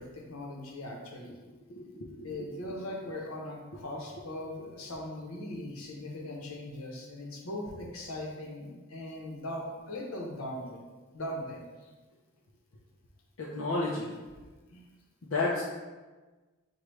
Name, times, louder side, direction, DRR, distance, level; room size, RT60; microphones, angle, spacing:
voice 1, 0.0-1.4 2.2-10.8 11.1-11.9 14.6-14.8, left 1 dB, 85° left, -1 dB, 0.9 m, -40 dB
voice 2, 1.7-2.1 13.4-14.1 15.3-15.6, left 3 dB, 65° left, -5 dB, 0.6 m, -31 dB
6.0 x 2.4 x 3.2 m, 1.3 s
head